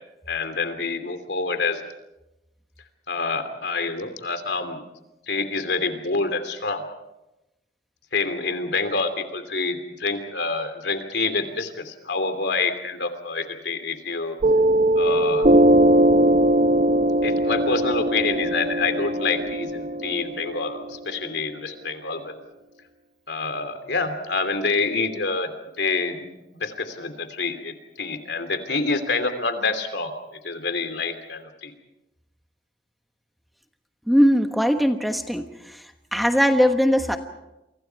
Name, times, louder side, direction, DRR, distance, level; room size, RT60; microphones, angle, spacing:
voice 1, 0.3-1.8 3.1-4.8 5.3-6.8 8.1-14.4 15.0-15.5 17.2-22.3 23.3-25.5 25.8-30.1 30.4-31.7, left 4 dB, 85° left, 8 dB, 2.9 m, -27 dB
Piano, 14.4-21.5, right 1 dB, 45° right, 0.7 m, -20 dB
voice 2, 34.1-35.8 36.1-37.2, equal, ahead, 6 dB, 1.2 m, -20 dB
29.5 x 24.5 x 4.7 m, 0.94 s
head